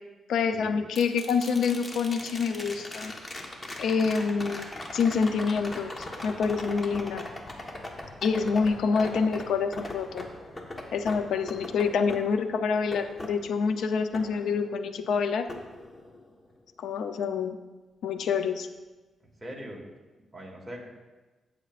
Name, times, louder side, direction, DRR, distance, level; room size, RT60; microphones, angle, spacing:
voice 1, 0.3-3.1 3.8-5.9 6.2-7.3 8.2-10.3 10.9-15.5 16.8-17.6 18.0-18.7, left 5 dB, 80° left, 9 dB, 0.6 m, -27 dB
sound 1, 0.9-15.0 15.5-16.5 18.8-18.9, left 1 dB, 30° left, 1.3 m, -41 dB
voice 2, 8.3-9.1 19.4-19.8 20.3-20.8, equal, 15° right, -2 dB, 2.5 m, -42 dB
16.0 x 6.9 x 2.5 m, 1.2 s
cardioid pair, 85°, 0 cm